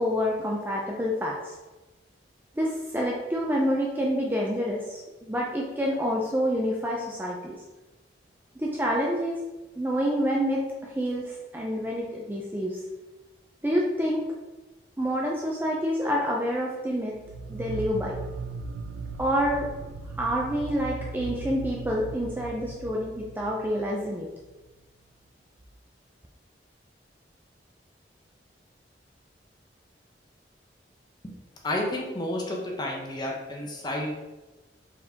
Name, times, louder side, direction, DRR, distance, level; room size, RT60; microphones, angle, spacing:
voice 1, 0.0-1.5 2.6-7.6 8.6-9.4 9.8-12.8 13.6-14.2 15.0-17.2 17.5-18.2 19.2-19.7 20.2-24.3, equal, 10° right, -2 dB, 0.4 m, -28 dB
sound 1, 17.2-24.5, right 3 dB, 85° right, 0.4 m, -38 dB
voice 2, 31.6-34.2, left 1 dB, 25° left, -1 dB, 0.7 m, -31 dB
4.4 x 3.5 x 2.8 m, 1.1 s
head